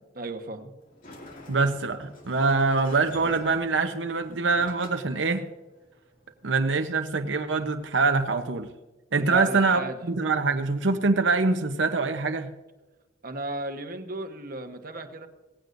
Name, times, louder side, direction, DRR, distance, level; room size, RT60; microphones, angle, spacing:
voice 1, 0.2-0.7 9.2-10.0 13.2-15.3, right 2 dB, 50° right, 6 dB, 1.2 m, -34 dB
Sliding door, 0.8-8.4, left 1 dB, 50° left, 2.5 m, -49 dB
voice 2, 1.5-5.4 6.4-8.7 9.1-12.5, right 4 dB, 80° right, 7 dB, 0.9 m, -24 dB
18.0 x 16.0 x 2.6 m, 1.1 s
head